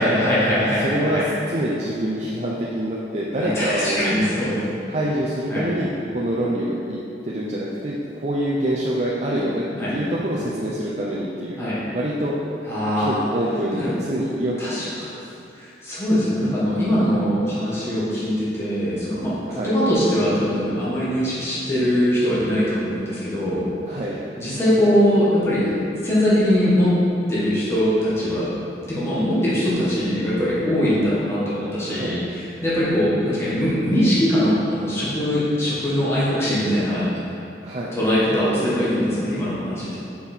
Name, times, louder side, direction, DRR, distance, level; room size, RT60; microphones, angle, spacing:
voice 1, 0.0-1.2 3.4-4.7 5.5-5.7 9.8-9.9 11.6-11.8 12.7-13.2 13.8-13.9 14.6-14.9 15.5-23.7 24.4-25.7 26.0-26.9 27.3-28.5 28.9-37.1 37.9-40.0, equal, 15° left, -10 dB, 1.7 m, -21 dB
voice 2, 0.8-4.2 4.9-9.6 9.9-11.6 11.9-12.4 12.9-14.9 19.5-19.8 23.9-24.2 31.8-32.2 37.6-38.0, right 1 dB, 40° right, -6 dB, 0.6 m, -26 dB
6.6 x 5.4 x 4.5 m, 2.6 s
head